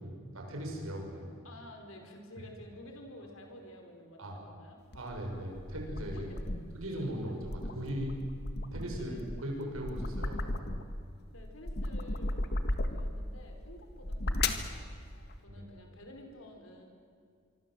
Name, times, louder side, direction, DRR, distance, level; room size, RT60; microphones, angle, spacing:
voice 1, 0.0-1.3 4.2-4.4 4.9-6.3 6.7-8.2 8.7-9.1 9.4-10.8 15.5-15.6, equal, 80° right, 1 dB, 6.6 m, -38 dB
voice 2, 1.4-4.8 6.1-6.4 6.9-7.4 8.9-9.2 11.3-12.4 12.9-16.8, left 1 dB, 75° left, 3 dB, 5.0 m, -51 dB
sound 1, 4.9-6.8 7.3-11.0 11.4-13.3 13.9-14.7, left 2 dB, 50° left, 1.7 m, -35 dB
25.0 x 25.0 x 7.9 m, 2.2 s
head